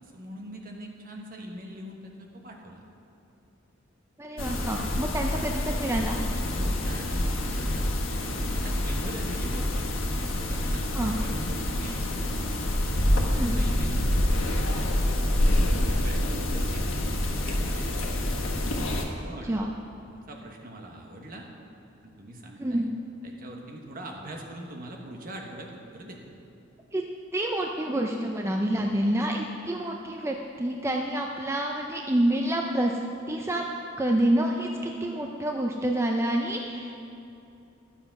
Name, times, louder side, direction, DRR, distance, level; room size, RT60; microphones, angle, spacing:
voice 1, 0.0-2.8 6.5-7.9 8.6-9.9 10.2-12.2 13.1-18.0 19.2-19.5 20.1-21.5 22.0-22.9 23.2-26.2 28.8-28.9, right 1 dB, 45° right, 1 dB, 1.4 m, -42 dB
voice 2, 4.2-6.2 10.9-11.2 13.3-13.6 19.4-19.7 22.6-22.9 26.9-27.0 27.3-33.0 33.3-33.6 34.0-36.9, right 1 dB, 15° right, 1 dB, 0.5 m, -27 dB
sound 1, 4.4-19.1, left 1 dB, 85° left, 1.3 m, -27 dB
12.0 x 7.3 x 5.9 m, 2.9 s
head